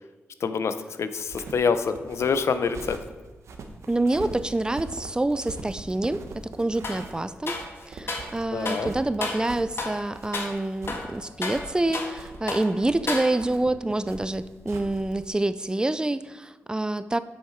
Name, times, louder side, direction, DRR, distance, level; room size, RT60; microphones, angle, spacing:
voice 1, 0.4-3.0 8.5-8.9, left 5 dB, 70° left, 11 dB, 0.6 m, -26 dB
sound 1, 1.2-15.3, right 3 dB, 80° right, 1.0 m, -42 dB
voice 2, 3.9-6.2 6.6-7.5 7.9-17.2, right 2 dB, 15° right, 13 dB, 0.4 m, -27 dB
sound 2, 6.8-7.1 7.5-8.3 8.6-8.9 9.2-9.5 9.8-10.0 10.3-10.6 10.9-12.2 12.5-12.7 13.1-13.6, left 3 dB, 55° left, 1.5 m, -32 dB
8.0 x 6.5 x 4.5 m, 1.3 s
cardioid pair, 70°, 5 cm